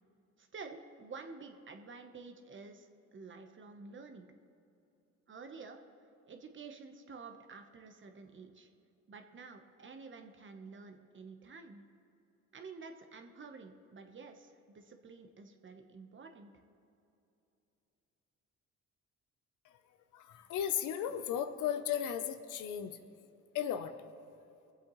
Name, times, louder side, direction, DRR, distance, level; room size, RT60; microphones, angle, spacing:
voice 1, 0.4-4.3 5.3-5.8 6.3-8.7 9.1-11.8 12.5-16.5, right 4 dB, 40° right, 5 dB, 1.1 m, -50 dB
voice 2, 20.1-23.0 23.5-23.9, left 9 dB, 90° left, 9 dB, 0.7 m, -35 dB
23.0 x 7.7 x 3.1 m, 2.9 s
cardioid pair, 90°, 30 cm